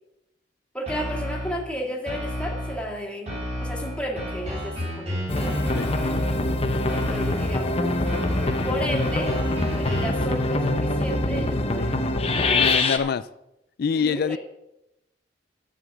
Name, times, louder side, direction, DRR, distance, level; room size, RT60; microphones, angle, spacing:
voice 1, 0.7-5.2 6.9-8.1 8.6-9.4 9.7-13.2 13.9-14.4, equal, 5° left, -1 dB, 2.0 m, -33 dB
sound 1, 0.9-1.7 2.1-2.9 3.3-6.5 6.9-7.7 8.1-10.3, equal, 35° right, 4.2 m, -31 dB
sound 2, 5.3-13.0, left 2 dB, 35° left, 0.8 m, -24 dB
voice 2, 12.5-13.2 13.8-14.4, left 6 dB, 55° left, 17 dB, 0.4 m, -25 dB
11.0 x 5.7 x 7.6 m, 0.89 s
head